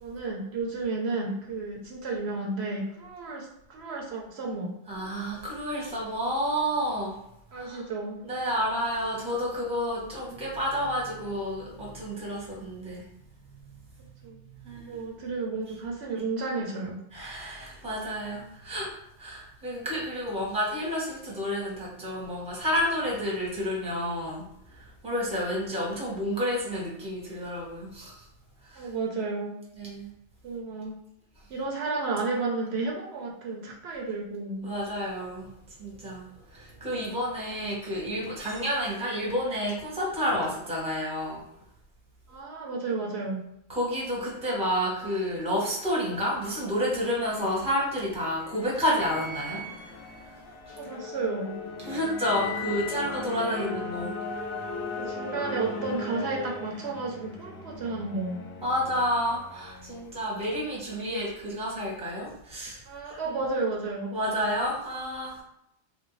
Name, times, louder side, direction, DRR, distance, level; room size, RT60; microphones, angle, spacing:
voice 1, 0.0-4.8 7.5-8.2 14.2-14.4 14.9-17.0 28.8-29.5 30.4-30.9 31.5-34.7 42.3-43.4 50.7-51.6 53.4-53.7 55.0-58.4 62.9-64.1, right 3 dB, 70° right, -1 dB, 0.8 m, -32 dB
voice 2, 4.9-7.2 7.5-7.8 8.2-13.0 13.7-13.8 14.6-15.1 17.1-28.3 28.6-28.9 29.7-30.1 31.4-31.5 34.6-41.4 43.7-49.7 50.7-50.8 51.8-54.1 58.6-63.4 64.1-65.4, equal, 5° right, -4 dB, 0.8 m, -30 dB
sound 1, 46.9-60.5, left 3 dB, 60° left, 0.7 m, -38 dB
3.1 x 2.5 x 3.0 m, 0.77 s
omnidirectional pair, 1.2 m